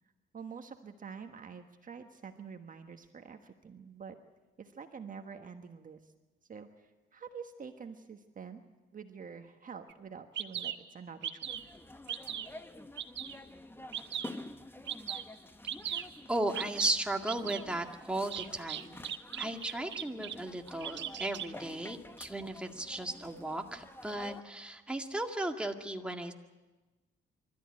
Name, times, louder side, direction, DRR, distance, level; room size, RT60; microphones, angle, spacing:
voice 1, 0.3-4.2 4.6-6.1 6.5-8.6 8.9-11.5 14.2-14.4, right 6 dB, 40° right, 6 dB, 1.5 m, -47 dB
Bird vocalization bird call bird song, 9.9-10.0 10.4-10.8 11.2-11.7 12.1-12.5 13.0-13.4 13.9-14.4 14.9-15.2 15.7-16.1 16.5-16.9 17.3-17.6 18.3-20.4 20.7-21.5, right 10 dB, 65° right, 1.4 m, -38 dB
sound 1, 11.4-24.4, left 1 dB, 10° left, 1.1 m, -50 dB
voice 2, 15.9-18.9 19.4-26.3, right 1 dB, 5° right, 3 dB, 2.1 m, -36 dB
25.5 x 13.5 x 9.7 m, 1.2 s
cardioid pair, 90°, 20 cm